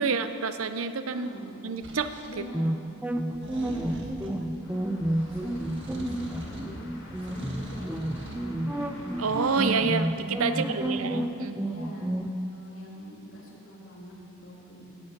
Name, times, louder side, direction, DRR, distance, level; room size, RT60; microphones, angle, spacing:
voice 1, 0.0-1.3 1.6-2.1 9.2-11.6, right 5 dB, 85° right, 10 dB, 0.7 m, -28 dB
voice 2, 1.1-1.5 2.3-2.7 3.4-4.9 5.3-6.7 7.2-9.0 10.4-11.1 11.6-14.9, equal, 70° left, -4 dB, 3.2 m, -43 dB
sound 1, 1.8-2.3 3.3-4.4 5.0-6.8 7.1-8.4, equal, 60° right, 1.7 m, -42 dB
sound 2, 2.5-12.3, right 1 dB, 5° right, 0.5 m, -30 dB
sound 3, 4.6-9.8, left 1 dB, 85° left, 3.3 m, -48 dB
15.0 x 8.9 x 6.0 m, 2.6 s
head